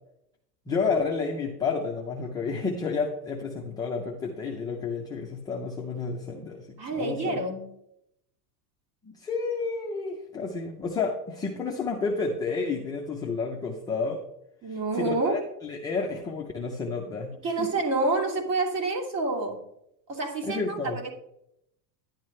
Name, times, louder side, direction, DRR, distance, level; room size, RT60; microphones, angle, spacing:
voice 1, 0.7-7.4 9.0-14.2 14.7-17.7 20.4-21.0, left 4 dB, 10° left, -1 dB, 0.5 m, -31 dB
voice 2, 6.8-7.7 14.6-15.4 17.4-19.6 20.1-20.8, right 2 dB, 30° right, 1 dB, 2.5 m, -28 dB
11.0 x 10.5 x 3.2 m, 0.78 s
supercardioid pair, 155°, 49 cm